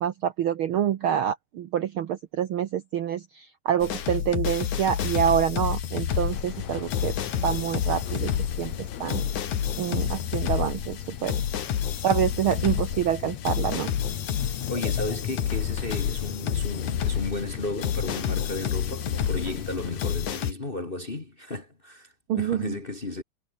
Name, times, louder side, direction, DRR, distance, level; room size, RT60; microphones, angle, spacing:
voice 1, 0.0-7.1 7.4-8.3 8.6-9.2 9.8-11.3 12.0-13.9 22.3-22.8, right 10 dB, 65° right, 1.4 m, -27 dB
sound 1, 3.8-20.5, left 9 dB, 90° left, 3.4 m, -29 dB
sound 2, 6.3-20.3, left 10 dB, 70° left, 2.8 m, -37 dB
voice 2, 14.4-23.2, left 2 dB, 25° left, 1.4 m, -34 dB
omnidirectional pair, 3.3 m